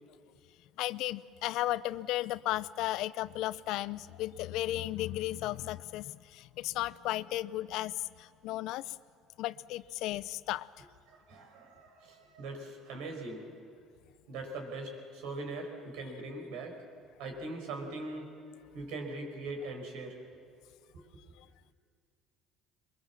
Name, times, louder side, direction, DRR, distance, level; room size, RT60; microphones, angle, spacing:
voice 1, 0.8-9.0 9.4-10.7 21.4-21.5, left 15 dB, 75° left, 18 dB, 0.5 m, -35 dB
voice 2, 11.1-13.5 14.3-16.8 17.2-18.3 18.7-20.2 20.9-21.0, right 2 dB, 80° right, 3 dB, 5.2 m, -41 dB
23.0 x 22.0 x 7.3 m, 2.3 s
cardioid pair, 105°, 0 cm